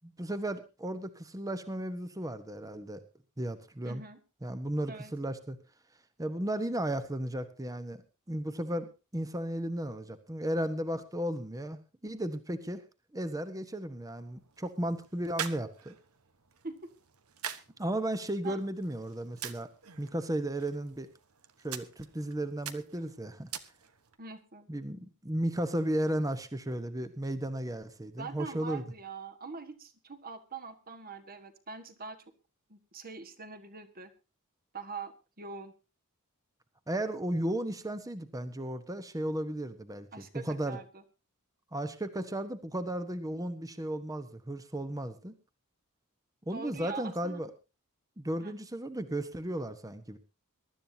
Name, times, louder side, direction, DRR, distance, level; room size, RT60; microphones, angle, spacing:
voice 1, 0.0-3.0 3.4-4.0 4.4-5.6 6.2-8.0 8.3-12.8 13.1-16.0 17.8-19.7 20.0-21.1 21.6-23.5 24.7-28.8 36.9-40.8 41.7-45.4 46.5-47.5 48.2-50.2, right 1 dB, 15° right, 11 dB, 1.0 m, -34 dB
voice 2, 3.8-4.2 4.9-5.1 16.6-16.9 18.4-18.6 24.2-24.7 28.2-32.2 32.7-34.1 34.7-35.7 40.1-41.0 46.5-47.4 48.4-48.6, right 4 dB, 40° right, 11 dB, 1.6 m, -43 dB
sound 1, 14.1-24.2, right 9 dB, 75° right, 1.2 m, -45 dB
23.0 x 12.5 x 2.8 m, 0.29 s
head